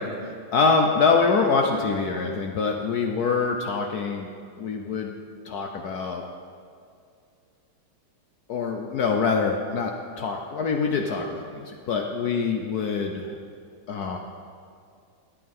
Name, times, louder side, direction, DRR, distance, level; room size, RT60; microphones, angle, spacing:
voice 1, 0.0-4.3 4.6-5.1 5.5-6.2 8.5-13.3 13.9-14.2, left 4 dB, 65° left, 3 dB, 1.0 m, -25 dB
11.5 x 8.6 x 5.4 m, 2.3 s
omnidirectional pair, 2.2 m